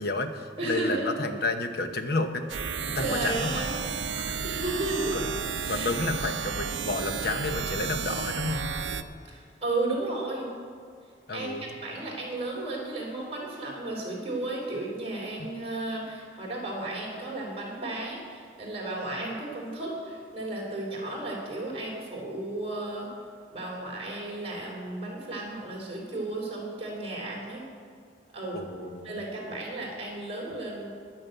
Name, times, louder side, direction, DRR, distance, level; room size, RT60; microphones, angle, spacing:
voice 1, 0.0-2.4 2.9-3.6 4.1-4.4 5.1-5.3 5.7-8.7 11.3-11.7 28.5-29.2, left 2 dB, 60° left, 7 dB, 1.0 m, -31 dB
voice 2, 0.6-1.1 3.0-3.7 4.4-5.3 5.7-5.9 9.2-10.5 11.3-23.1 23.5-27.7 28.3-28.6 29.0-30.9, right 2 dB, 35° right, -3 dB, 4.0 m, -33 dB
sound 1, 2.5-9.0, right 6 dB, 80° right, 0.6 m, -32 dB
11.0 x 9.1 x 8.0 m, 2.2 s
head